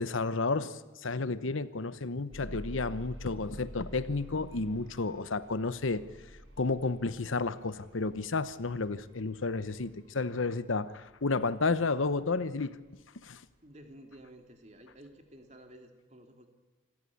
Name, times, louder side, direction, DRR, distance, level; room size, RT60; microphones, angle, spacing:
voice 1, 0.0-6.0 6.6-12.8 13.2-13.4, left 3 dB, 80° left, 15 dB, 0.9 m, -31 dB
sound 1, 2.3-14.2 14.9-15.0 15.5-15.6, equal, 75° right, 5.6 m, -50 dB
voice 2, 13.6-16.5, right 1 dB, 35° right, 5 dB, 2.5 m, -53 dB
26.0 x 15.0 x 8.5 m, 1.3 s
head